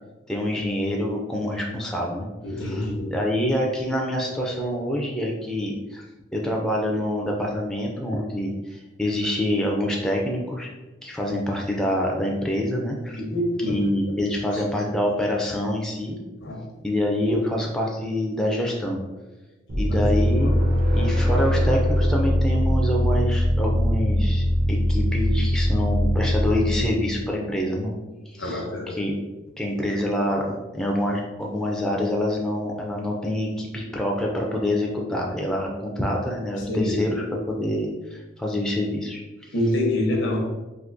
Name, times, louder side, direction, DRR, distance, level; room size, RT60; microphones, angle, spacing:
voice 1, 0.3-6.0 6.3-10.7 11.0-13.2 13.6-16.2 16.8-19.0 19.8-20.5 20.9-28.0 28.3-29.2 29.6-39.5, left 1 dB, 5° left, -1 dB, 0.3 m, -26 dB
voice 2, 2.4-3.1 13.2-13.8 14.5-14.6 16.4-16.6 19.9-20.0 20.4-20.5 28.4-29.0 36.7-37.0 39.5-40.4, left 1 dB, 85° left, 0 dB, 0.7 m, -26 dB
sound 1, 19.7-27.1, equal, 50° right, 0.7 m, -21 dB
3.6 x 2.6 x 2.5 m, 1.1 s
head